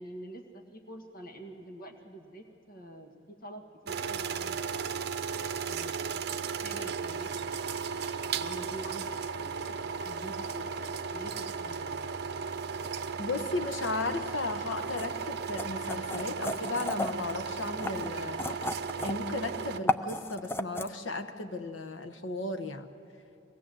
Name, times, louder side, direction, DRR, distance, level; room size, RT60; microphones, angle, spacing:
voice 1, 0.0-5.1 5.6-8.0 8.3-12.2, right 1 dB, 50° left, 4 dB, 1.8 m, -46 dB
sound 1, 3.9-19.8, right 5 dB, 60° right, 0.7 m, -35 dB
voice 2, 13.2-18.4 19.0-22.9, left 2 dB, 85° left, 9 dB, 1.2 m, -35 dB
sound 2, 15.0-15.1 15.6-17.3 17.8-19.3 19.6-20.9, left 2 dB, 10° left, 0.5 m, -32 dB
22.5 x 18.5 x 7.7 m, 2.9 s
head